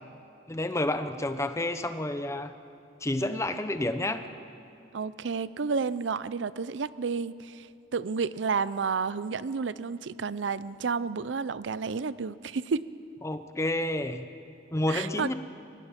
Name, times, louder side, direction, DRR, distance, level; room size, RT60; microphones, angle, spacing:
voice 1, 0.5-2.5 3.0-4.2 13.2-14.3 14.7-15.3, left 1 dB, 15° left, 10 dB, 0.8 m, -29 dB
voice 2, 4.9-7.7 7.9-12.8 14.9-15.3, right 5 dB, 85° right, 17 dB, 0.5 m, -31 dB
24.0 x 18.5 x 5.9 m, 2.6 s
head